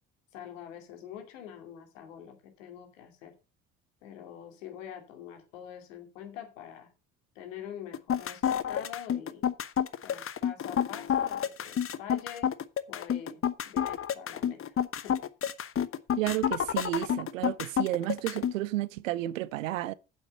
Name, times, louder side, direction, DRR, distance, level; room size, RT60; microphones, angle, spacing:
voice 1, 0.3-3.3 4.0-6.9 7.3-9.5 10.0-12.5 12.9-14.8 15.0-15.2, left 9 dB, 75° left, 2.7 m, -45 dB
sound 1, 7.9-18.5, left 9 dB, 35° left, 1.0 m, -29 dB
voice 2, 16.2-19.9, right 15 dB, 75° right, 0.7 m, -32 dB
8.8 x 7.7 x 5.5 m
figure-of-eight pair, 50°, 39 cm